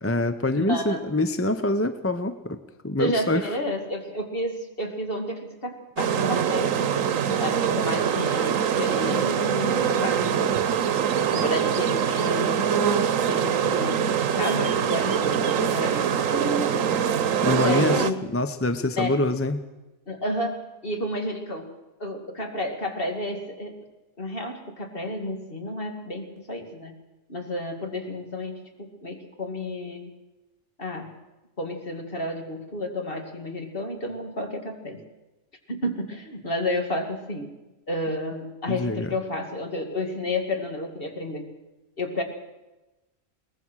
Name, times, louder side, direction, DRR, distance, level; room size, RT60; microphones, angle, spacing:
voice 1, 0.0-2.6 2.8-3.4 17.4-18.0 18.3-19.6 38.7-39.1, left 2 dB, 15° left, 10 dB, 0.6 m, -25 dB
voice 2, 0.5-1.0 3.0-6.8 7.4-10.3 11.3-12.7 13.2-17.0 17.6-18.2 19.0-19.2 20.1-21.7 22.0-23.8 24.2-27.0 27.3-30.1 30.8-31.1 31.6-35.0 35.7-37.5 37.9-41.5 42.0-42.2, left 1 dB, 45° left, 4 dB, 2.6 m, -31 dB
sound 1, 6.0-18.1, right 8 dB, 80° right, 1.2 m, -24 dB
22.5 x 19.0 x 6.3 m, 1.0 s
omnidirectional pair, 1.3 m